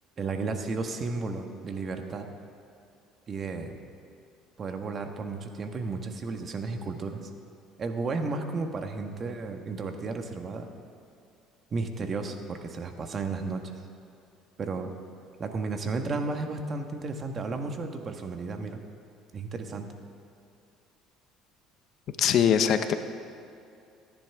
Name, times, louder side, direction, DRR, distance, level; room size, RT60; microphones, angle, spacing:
voice 1, 0.2-2.3 3.3-3.8 4.6-7.2 7.8-10.7 11.7-13.6 14.6-14.9 15.4-18.8 19.3-19.9, right 3 dB, 40° right, 5 dB, 1.4 m, -33 dB
voice 2, 22.2-22.9, left 8 dB, 60° left, 9 dB, 0.8 m, -22 dB
24.0 x 10.5 x 3.6 m, 2.6 s
supercardioid pair, 100°, 0 cm